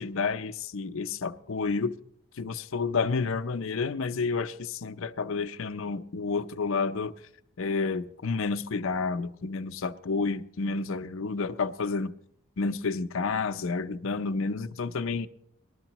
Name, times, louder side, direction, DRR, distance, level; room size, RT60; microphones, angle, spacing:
voice 1, 0.0-1.9 2.4-7.2 7.6-12.1 12.6-15.3, left 4 dB, 65° left, 0.6 m, -30 dB
20.0 x 12.5 x 3.0 m
head